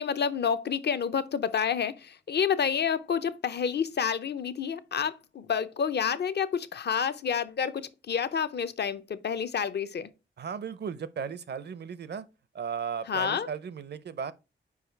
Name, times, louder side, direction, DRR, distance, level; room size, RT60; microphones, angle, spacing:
voice 1, 0.0-10.1 13.1-13.5, left 7 dB, 55° left, 0.6 m, -29 dB
voice 2, 10.4-12.2 12.5-14.3, right 7 dB, 55° right, 0.6 m, -36 dB
4.8 x 4.8 x 4.5 m
cardioid pair, 55°, 20 cm